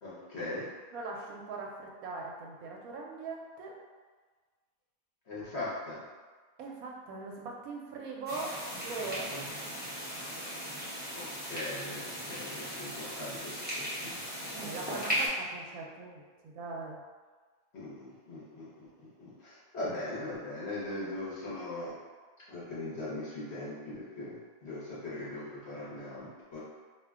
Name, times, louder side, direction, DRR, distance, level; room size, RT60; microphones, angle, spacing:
voice 1, 0.0-0.7 5.3-6.0 9.3-9.4 11.1-14.2 17.7-22.0 22.5-26.6, left 2 dB, 55° left, -8 dB, 1.0 m, -40 dB
voice 2, 0.9-3.8 6.6-9.6 14.5-17.0 20.5-20.6, right 3 dB, 85° right, -1 dB, 1.0 m, -41 dB
sound 1, 8.3-15.3, equal, 10° right, 0.5 m, -37 dB
2.6 x 2.1 x 3.5 m, 1.4 s
omnidirectional pair, 1.5 m